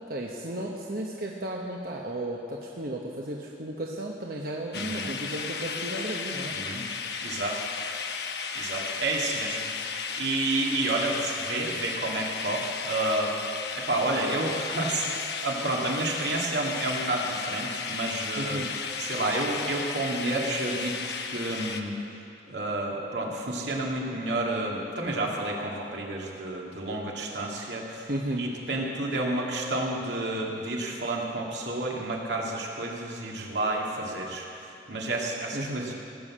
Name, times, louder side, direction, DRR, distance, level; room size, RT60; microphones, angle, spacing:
voice 1, 0.0-6.5 18.4-18.7 28.1-28.5 35.5-35.9, right 1 dB, 55° right, -1 dB, 1.0 m, -34 dB
sound 1, 4.7-21.8, left 5 dB, 70° left, 0.9 m, -34 dB
voice 2, 4.7-5.1 6.5-6.8 7.2-7.6 8.5-9.7 10.2-13.3 13.8-18.6 19.0-21.0 21.2-21.9 22.5-34.5 34.9-35.9, right 2 dB, 80° right, -2 dB, 2.3 m, -30 dB
17.5 x 8.5 x 7.4 m, 2.7 s
head